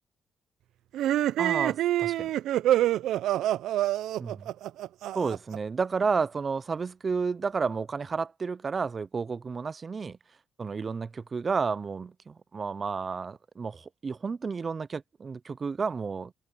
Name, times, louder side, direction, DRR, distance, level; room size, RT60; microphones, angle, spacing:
sound 1, 0.9-5.6, right 13 dB, 80° right, 0.5 m, -26 dB
voice 1, 1.4-2.3 4.2-4.5 5.1-10.2 10.6-16.3, right 5 dB, 35° right, 0.6 m, -31 dB
cardioid pair, 90°, 0 cm